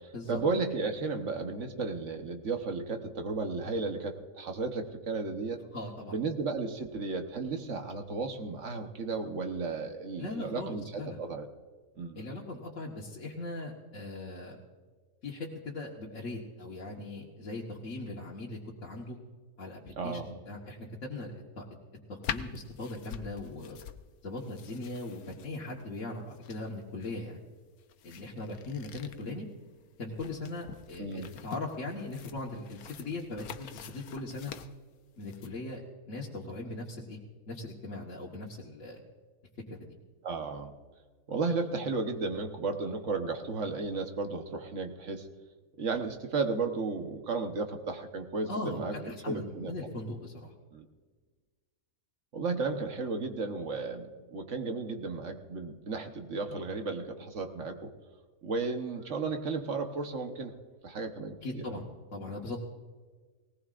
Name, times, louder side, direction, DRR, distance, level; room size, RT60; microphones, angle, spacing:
voice 1, 0.0-5.6 6.1-11.5 12.0-12.2 20.0-20.3 31.0-31.3 40.2-40.7 41.3-45.3 45.8-48.9 49.2-49.9 50.7-50.8 52.3-57.9 58.4-60.5 60.8-61.6, right 4 dB, 60° right, 5 dB, 1.4 m, -34 dB
voice 2, 5.7-6.2 10.2-11.2 12.1-14.6 15.2-19.2 19.6-21.6 22.1-23.8 24.2-27.4 28.0-29.5 30.0-34.5 35.1-35.8 36.1-37.2 37.5-39.0 39.7-39.8 48.5-50.5 61.4-62.6, left 2 dB, 60° left, -4 dB, 1.7 m, -39 dB
sound 1, 22.2-35.5, left 9 dB, 85° left, 1.2 m, -45 dB
19.0 x 19.0 x 2.5 m, 1.4 s
omnidirectional pair, 1.5 m